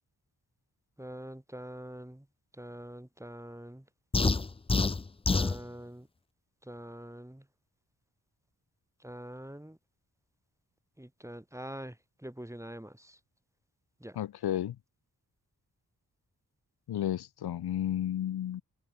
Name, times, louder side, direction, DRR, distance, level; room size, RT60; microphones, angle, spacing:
voice 1, 1.0-2.3 2.5-3.9 5.3-6.1 6.6-7.5 9.0-9.8 11.0-13.2 14.0-14.2, right 1 dB, 10° right, 1.8 m, -44 dB
sound 1, 4.1-5.6, left 3 dB, 15° left, 0.4 m, -27 dB
voice 2, 14.2-14.8 16.9-18.6, left 11 dB, 80° left, 0.7 m, -32 dB
open air
cardioid pair, 60°, 38 cm